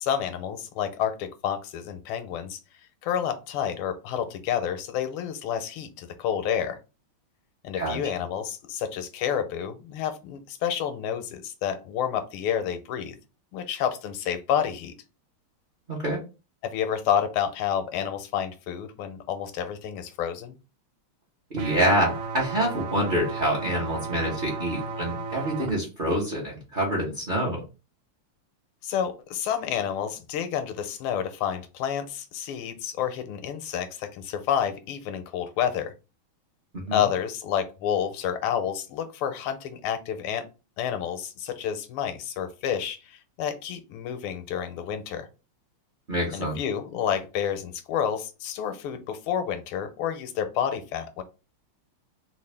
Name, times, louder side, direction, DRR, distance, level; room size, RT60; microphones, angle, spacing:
voice 1, 0.0-2.6 3.0-6.8 7.6-13.1 13.5-15.0 16.6-20.6 28.8-35.9 36.9-40.4 40.8-45.3 46.3-51.2, left 9 dB, 85° left, 9 dB, 1.5 m, -29 dB
voice 2, 15.9-16.2 21.5-27.6 36.7-37.0 46.1-46.6, right 1 dB, 40° right, -3 dB, 0.7 m, -26 dB
sound 1, 21.6-25.7, right 4 dB, 70° right, 1.2 m, -34 dB
3.8 x 2.4 x 3.3 m, 0.30 s
omnidirectional pair, 2.4 m